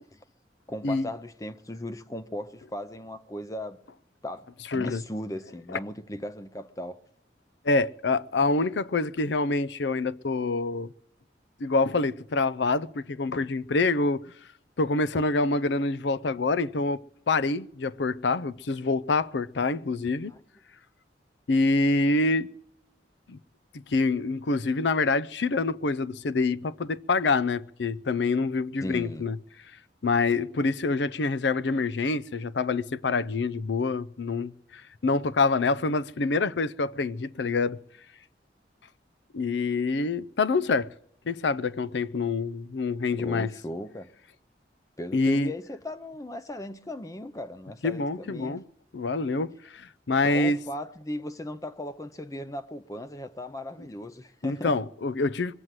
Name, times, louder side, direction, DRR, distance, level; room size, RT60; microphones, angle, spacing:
voice 1, 0.7-3.8 4.2-4.5 4.7-7.0 20.3-20.4 28.8-29.3 43.1-44.1 45.0-48.6 50.2-54.8, left 1 dB, 20° left, 0.5 m, -37 dB
voice 2, 4.7-5.0 5.7-5.8 7.6-10.9 11.6-14.3 14.8-20.3 21.5-22.5 23.3-23.4 23.9-29.4 30.0-37.8 39.3-40.9 41.3-43.5 45.1-45.5 47.8-48.6 48.9-50.6 54.4-55.5, left 3 dB, 85° left, 0.6 m, -26 dB
22.5 x 8.0 x 7.5 m
head